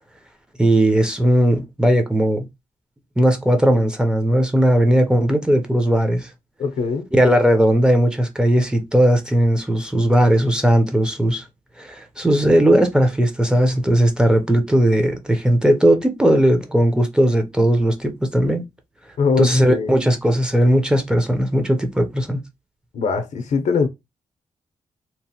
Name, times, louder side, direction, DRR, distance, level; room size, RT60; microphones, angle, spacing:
voice 1, 0.6-2.5 3.2-6.3 7.1-11.4 11.8-18.6 19.4-22.4, right 1 dB, 5° right, 0.6 m, -17 dB
voice 2, 6.6-7.1 19.2-20.0 22.9-23.9, left 5 dB, 70° left, 0.6 m, -21 dB
2.9 x 2.0 x 2.8 m
cardioid pair, 95°, 13 cm